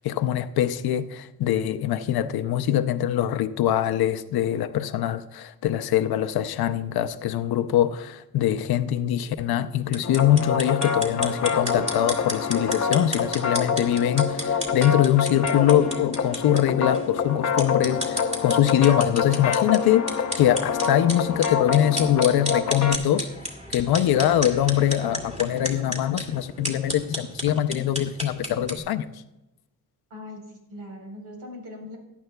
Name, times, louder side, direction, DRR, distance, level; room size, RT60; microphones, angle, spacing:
voice 1, 0.0-20.0 20.4-23.3 23.7-29.1, left 11 dB, 90° left, 0.6 m, -23 dB
sound 1, 9.8-28.8, equal, 20° right, 2.2 m, -34 dB
sound 2, 10.0-23.0, left 6 dB, 50° left, 0.7 m, -26 dB
voice 2, 30.1-32.0, left 1 dB, 90° right, 3.9 m, -40 dB
17.0 x 11.0 x 2.2 m
cardioid pair, 100°, 36 cm